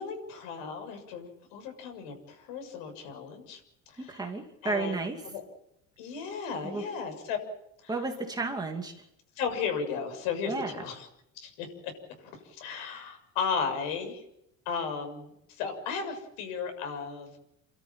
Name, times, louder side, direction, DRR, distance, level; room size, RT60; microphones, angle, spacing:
voice 1, 0.0-3.6 3.9-4.2 4.6-5.4 6.0-7.4 7.8-7.9 9.4-11.1 11.4-11.9 12.2-14.2 14.7-17.3, left 6 dB, 85° left, 6 dB, 6.9 m, -35 dB
voice 2, 4.0-5.2 6.6-6.8 7.9-8.9 10.5-10.7, right 3 dB, 10° right, 2 dB, 2.5 m, -32 dB
29.5 x 13.5 x 9.1 m, 0.82 s
cardioid pair, 170°, 35 cm